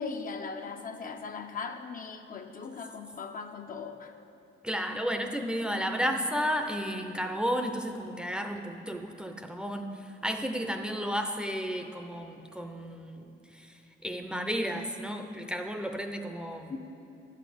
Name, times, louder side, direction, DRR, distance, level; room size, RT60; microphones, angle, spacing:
voice 1, 0.0-4.1 16.7-16.9, left 5 dB, 45° left, 6 dB, 0.5 m, -39 dB
voice 2, 4.6-9.9 10.2-13.3 13.6-13.7 14.0-16.7, equal, 5° right, 4 dB, 0.6 m, -32 dB
11.0 x 4.1 x 7.6 m, 2.8 s
cardioid pair, 100°, 20 cm